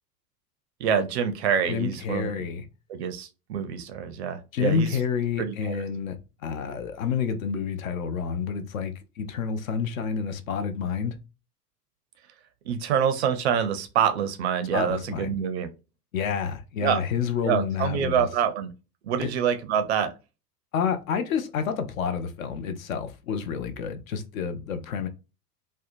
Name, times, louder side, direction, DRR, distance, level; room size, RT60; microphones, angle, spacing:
voice 1, 0.8-2.3 2.9-5.0 5.4-5.8 12.7-15.7 16.8-17.0 17.4-18.7 19.0-20.1, right 8 dB, 45° right, 0.4 m, -26 dB
voice 2, 1.7-2.7 4.5-11.2 14.7-15.4 16.1-18.3 19.2-19.3 20.7-25.1, left 6 dB, 60° left, 0.5 m, -29 dB
2.7 x 2.1 x 2.4 m
figure-of-eight pair, 85°, 48 cm